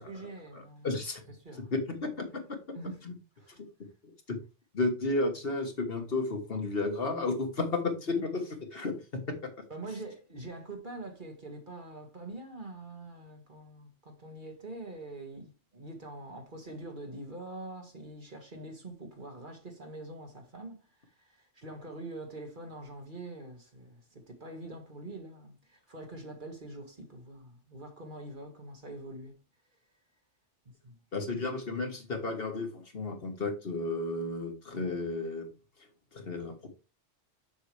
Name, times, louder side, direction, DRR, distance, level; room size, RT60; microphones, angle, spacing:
voice 1, 0.0-0.9 1.3-1.7 2.7-3.0 3.4-3.6 8.2-8.3 9.7-20.8 21.1-29.4 30.8-30.9, right 2 dB, 45° right, 2.0 m, -44 dB
voice 2, 0.8-1.2 1.6-2.6 3.0-3.1 3.6-3.9 4.3-4.4 4.7-8.4 8.7-9.6 31.1-35.5 36.1-36.7, left 3 dB, 55° left, 1.6 m, -33 dB
7.2 x 6.9 x 3.3 m
omnidirectional pair, 1.2 m